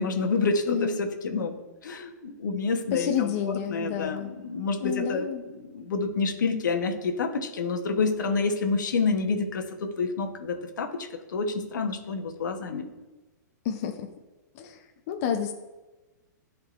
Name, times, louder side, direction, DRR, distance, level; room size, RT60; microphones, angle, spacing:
voice 1, 0.0-1.5 1.8-12.9, left 4 dB, 80° left, 5 dB, 0.9 m, -28 dB
voice 2, 0.7-1.0 2.9-4.3 4.8-5.4 13.6-14.1 14.6-14.8 15.1-15.5, left 9 dB, 50° left, 5 dB, 0.5 m, -29 dB
10.5 x 3.7 x 2.5 m, 1.1 s
hypercardioid pair, 130°, 10 cm